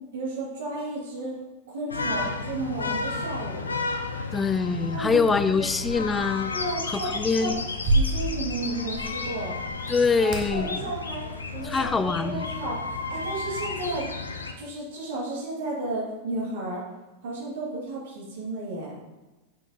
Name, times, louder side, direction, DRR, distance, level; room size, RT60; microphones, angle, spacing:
voice 1, 0.1-1.3 1.7-3.7 4.9-5.6 6.5-7.5 7.9-9.6 10.2-14.1 14.6-16.8 17.2-19.0, right 2 dB, 60° right, -4 dB, 2.0 m, -33 dB
sound 1, 1.9-14.5, left 3 dB, 75° left, 0.6 m, -33 dB
voice 2, 4.3-6.5 6.9-7.6 9.9-10.8 11.6-12.5, left 4 dB, 15° left, 12 dB, 0.4 m, -24 dB
sound 2, 5.7-12.8, right 1 dB, 35° right, 1.3 m, -32 dB
8.1 x 6.7 x 2.8 m, 1.1 s
figure-of-eight pair, 90°, 0 cm